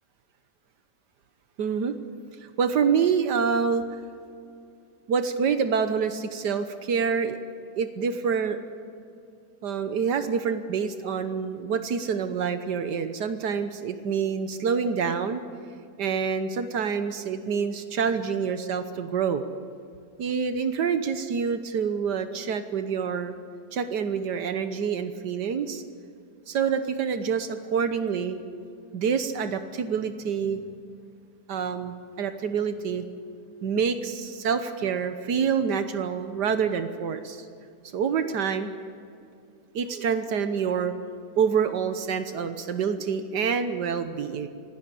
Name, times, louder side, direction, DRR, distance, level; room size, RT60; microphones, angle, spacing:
voice 1, 1.6-1.9 2.6-3.8 5.1-7.4 7.8-8.6 9.6-15.4 16.0-19.4 20.2-23.3 23.7-25.8 26.5-28.4 28.9-30.6 31.5-33.0 33.6-37.5 37.9-38.7 39.8-40.9 41.4-44.5, right 6 dB, 80° right, 9 dB, 1.6 m, -27 dB
25.5 x 17.0 x 8.5 m, 2.4 s
omnidirectional pair, 1.8 m